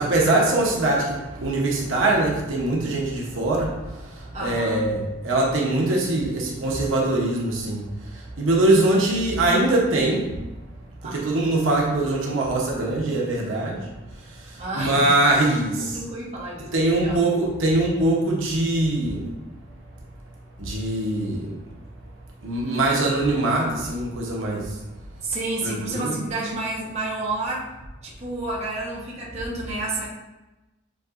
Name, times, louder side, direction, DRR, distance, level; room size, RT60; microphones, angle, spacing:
voice 1, 0.0-3.7 4.0-7.8 8.4-10.2 11.1-13.8 14.7-16.0 16.7-19.2 20.6-21.5 22.4-24.7 25.6-26.2, right 2 dB, 70° right, -2 dB, 0.9 m, -22 dB
voice 2, 4.3-4.8 11.0-11.4 14.6-15.2 15.8-17.2 25.2-27.7 28.0-30.1, right 2 dB, 30° right, -6 dB, 0.9 m, -30 dB
7.4 x 2.8 x 2.5 m, 1.0 s
head